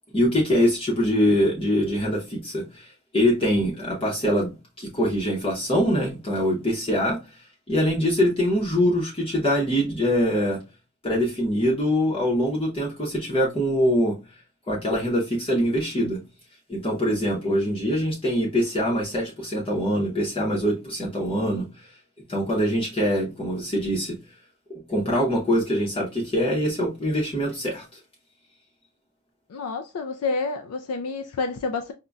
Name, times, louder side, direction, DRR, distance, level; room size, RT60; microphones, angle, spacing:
voice 1, 0.1-7.2 7.7-10.6 11.0-14.1 14.7-16.2 16.7-21.9 22.3-24.1 24.9-27.8, equal, 25° left, 0.7 m, -23 dB
voice 2, 29.5-31.9, left 4 dB, 80° left, 0.4 m, -29 dB
5.0 x 2.1 x 2.3 m
head